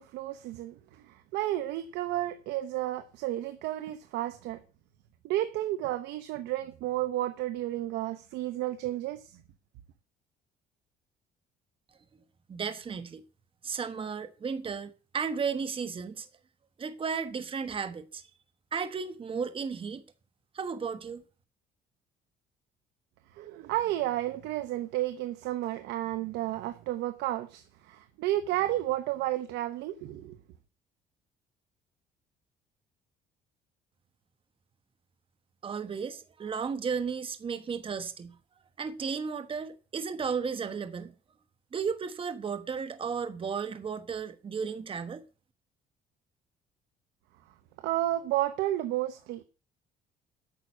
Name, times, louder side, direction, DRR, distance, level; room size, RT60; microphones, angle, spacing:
voice 1, 0.0-4.6 5.2-9.4 23.3-30.4 47.8-49.4, right 14 dB, 90° right, 0.9 m, -32 dB
voice 2, 12.5-13.2 13.6-16.3 16.8-18.2 18.7-20.0 20.5-21.2 35.6-38.3 38.8-41.1 41.7-45.2, right 6 dB, 30° right, 1.2 m, -34 dB
9.1 x 6.2 x 8.3 m
cardioid pair, 110°, 17 cm